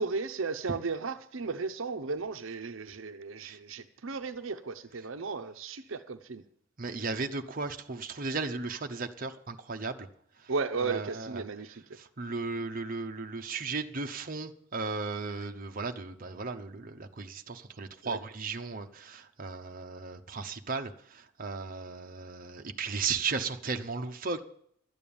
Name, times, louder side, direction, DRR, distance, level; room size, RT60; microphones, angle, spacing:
voice 1, 0.0-6.4 10.5-11.8 18.0-18.2, right 4 dB, 75° right, 9 dB, 0.8 m, -35 dB
voice 2, 6.8-10.1 10.4-10.5 10.8-11.4 11.9-24.4, right 4 dB, 45° right, 5 dB, 0.9 m, -36 dB
12.5 x 9.1 x 7.0 m, 0.66 s
head